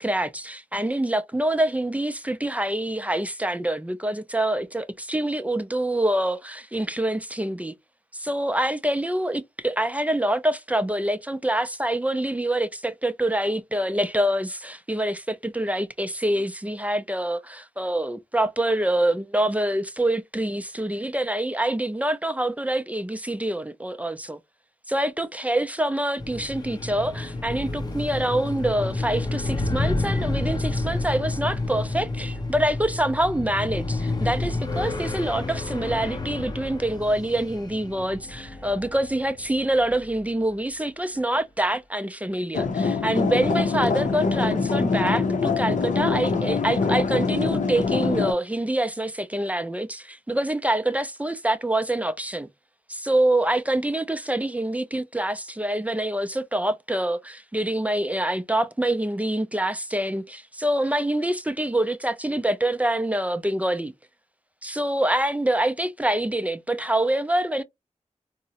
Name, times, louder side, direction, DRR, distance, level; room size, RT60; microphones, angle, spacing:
voice 1, 0.0-7.7 8.1-24.4 24.9-52.5 52.9-63.9 64.6-67.6, right 1 dB, 10° right, 0.3 m, -26 dB
sound 1, 26.2-40.2, left 2 dB, 35° left, 0.6 m, -30 dB
sound 2, 42.5-48.3, left 4 dB, 85° left, 0.6 m, -24 dB
3.6 x 2.0 x 2.7 m
wide cardioid pair, 95°, 12 cm